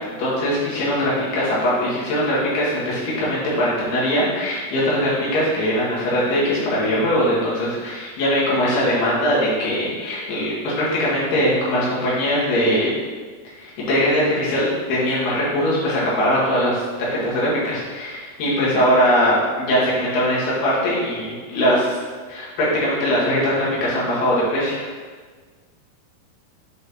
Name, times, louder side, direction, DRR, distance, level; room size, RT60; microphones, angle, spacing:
voice 1, 0.2-12.9 13.6-22.0 22.3-24.8, equal, 90° left, -7 dB, 3.9 m, -21 dB
7.8 x 3.8 x 4.2 m, 1.5 s
omnidirectional pair, 4.5 m